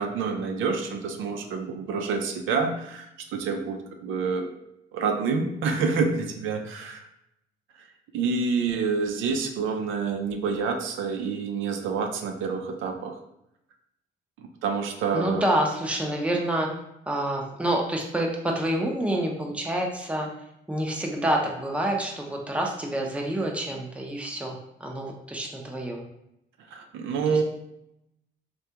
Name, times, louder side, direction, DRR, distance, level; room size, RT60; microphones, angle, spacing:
voice 1, 0.0-4.5 4.9-7.1 8.1-13.2 14.4-15.4 26.7-27.4, right 5 dB, 85° right, 4 dB, 0.5 m, -28 dB
voice 2, 15.1-16.7 17.1-20.3 20.7-26.0 27.3-27.4, right 1 dB, 5° right, 0 dB, 0.6 m, -27 dB
3.4 x 2.2 x 2.8 m, 0.81 s
cardioid pair, 90°, 20 cm